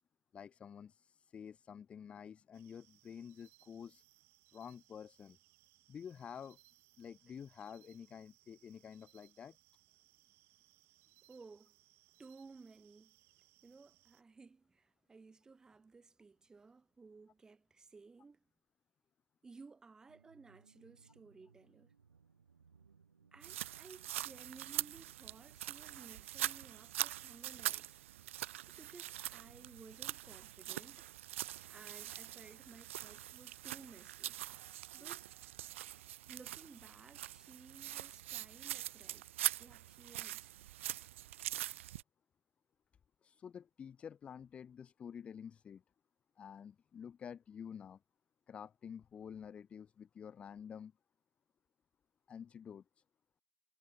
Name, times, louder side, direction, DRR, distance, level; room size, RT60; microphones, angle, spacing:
voice 1, 0.3-4.0 4.5-5.4 5.9-6.6 7.0-9.6 43.2-45.8 46.4-48.0 48.5-50.9 52.3-52.8, left 7 dB, 15° left, 1.0 m, -50 dB
sound 1, 2.5-14.2, right 20 dB, 30° right, 2.7 m, -69 dB
voice 2, 11.3-11.8 12.2-13.2 13.6-18.4 19.4-21.9 23.3-28.0 28.8-31.1 31.7-34.4 34.9-35.3 36.3-39.2 39.6-40.5, right 4 dB, 10° right, 2.9 m, -57 dB
sound 2, 20.0-30.9, right 6 dB, 90° right, 6.2 m, -68 dB
sound 3, 23.4-42.0, right 14 dB, 50° right, 0.4 m, -43 dB
hypercardioid pair, 145°, 9 cm